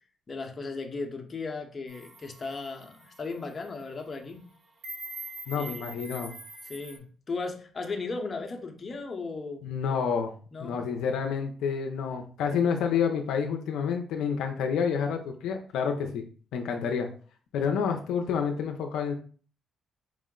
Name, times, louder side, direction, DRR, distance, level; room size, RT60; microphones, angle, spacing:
voice 1, 0.3-4.4 5.5-5.9 6.6-10.0 10.5-10.8 16.8-17.0, left 3 dB, 35° left, 3 dB, 0.8 m, -36 dB
sound 1, 1.9-7.0, right 2 dB, 55° right, 1.6 m, -44 dB
voice 2, 5.5-6.3 9.6-10.3 10.6-16.2 16.5-17.1 17.5-19.1, left 6 dB, 85° left, 4 dB, 0.5 m, -29 dB
4.7 x 2.0 x 3.7 m, 0.41 s
cardioid pair, 90°, 0 cm